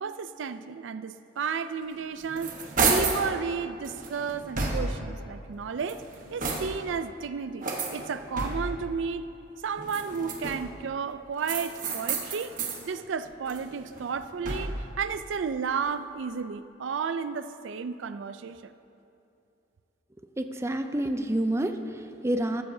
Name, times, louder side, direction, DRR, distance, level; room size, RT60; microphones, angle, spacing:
voice 1, 0.0-6.0 6.3-9.3 9.6-12.5 12.9-18.7, right 6 dB, 80° right, 12 dB, 0.4 m, -33 dB
sound 1, 1.9-3.3 3.8-5.1 5.7-6.9 7.6-8.9 9.8-10.8 11.4-12.8 13.3-14.9, right 3 dB, 45° right, 1.1 m, -31 dB
voice 2, 20.4-22.6, right 1 dB, 15° right, 7 dB, 0.4 m, -28 dB
14.0 x 13.0 x 2.7 m, 2.7 s
head